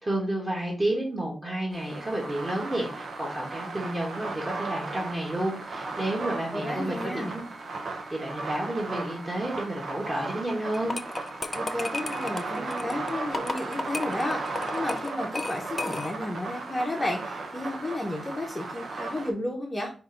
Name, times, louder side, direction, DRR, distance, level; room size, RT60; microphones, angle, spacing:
voice 1, 0.0-7.4 8.1-11.0, right 1 dB, 25° right, -3 dB, 1.2 m, -31 dB
sound 1, 1.7-19.3, right 3 dB, 70° right, 0.8 m, -36 dB
voice 2, 6.5-7.4 11.5-19.9, left 1 dB, 15° left, -1 dB, 0.8 m, -32 dB
sound 2, 10.7-16.3, left 3 dB, 30° left, 0.4 m, -35 dB
5.0 x 2.6 x 3.7 m, 0.36 s
wide cardioid pair, 140°, 0 cm